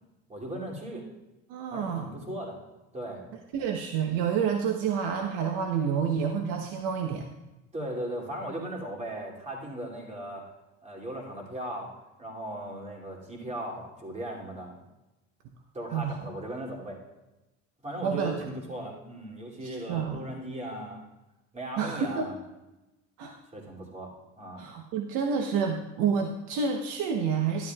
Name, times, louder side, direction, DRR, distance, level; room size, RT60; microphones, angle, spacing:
voice 1, 0.3-1.1 1.7-2.6 2.9-3.2 7.7-10.4 10.8-11.9 12.2-14.7 15.7-17.0 17.8-21.0 21.5-22.3 23.5-24.7, right 1 dB, 20° right, -2 dB, 2.7 m, -37 dB
voice 2, 1.5-2.1 3.5-7.3 15.9-16.2 18.0-18.3 19.6-20.2 21.8-22.3 23.2-23.4 24.6-27.7, right 6 dB, 70° right, 3 dB, 1.1 m, -29 dB
12.0 x 12.0 x 2.4 m, 1.0 s
supercardioid pair, 105°, 36 cm